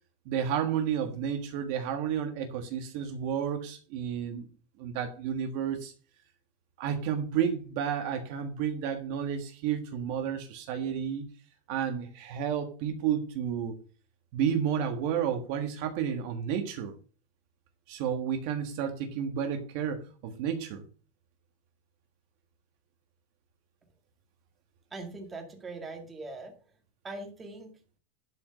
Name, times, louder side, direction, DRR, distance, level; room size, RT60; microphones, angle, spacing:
voice 1, 0.2-4.5 4.8-5.9 6.8-11.2 11.7-13.8 14.3-16.9 17.9-20.8, right 8 dB, 45° right, 6 dB, 1.4 m, -31 dB
voice 2, 24.9-26.5 27.0-27.7, right 2 dB, 10° right, 3 dB, 2.0 m, -41 dB
11.5 x 5.2 x 6.4 m, 0.37 s
supercardioid pair, 175°, 0 cm